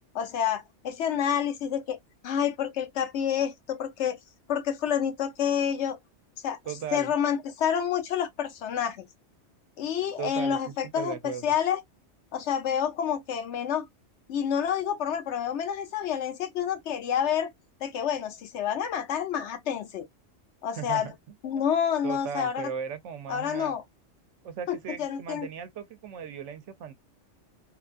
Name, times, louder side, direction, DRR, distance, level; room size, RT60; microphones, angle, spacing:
voice 1, 0.1-2.0 2.2-4.2 4.5-6.0 6.4-6.6 6.9-9.1 9.8-11.8 12.3-13.9 14.3-17.5 17.8-20.1 20.6-21.1 21.4-22.7 23.3-23.8 24.7-25.5, left 8 dB, 70° left, 0.9 m, -28 dB
voice 2, 6.6-7.1 10.2-10.6 10.9-11.5 20.8-21.1 21.5-21.6 22.0-23.8 24.4-26.9, right 7 dB, 75° right, 0.9 m, -37 dB
3.1 x 2.4 x 2.4 m
omnidirectional pair, 1.3 m